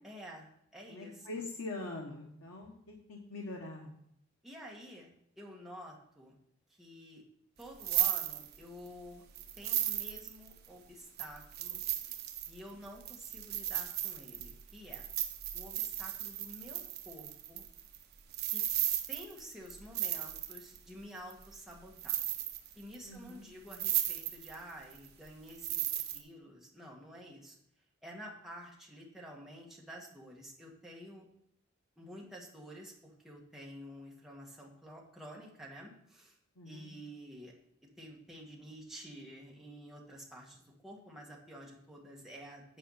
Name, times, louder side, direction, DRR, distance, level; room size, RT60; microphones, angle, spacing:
voice 1, 0.0-1.5 4.4-5.1 5.4-6.4 6.7-7.2 7.6-9.2 9.6-11.8 12.5-15.0 15.5-17.6 18.5-18.6 19.1-22.2 22.7-25.8 26.1-27.6 28.0-31.3 32.0-36.3 36.6-37.5 38.0-42.8, equal, ahead, -2 dB, 1.6 m, -50 dB
voice 2, 0.9-3.9 23.0-23.5 36.6-36.9, left 2 dB, 85° left, -1 dB, 1.1 m, -43 dB
sound 1, 7.6-8.9 9.4-10.7 11.2-20.8 21.3-21.7 22.0-23.0 23.3-23.4 23.7-24.6 24.9-26.2, right 12 dB, 50° right, 0.8 m, -35 dB
9.2 x 4.9 x 5.6 m, 0.73 s
head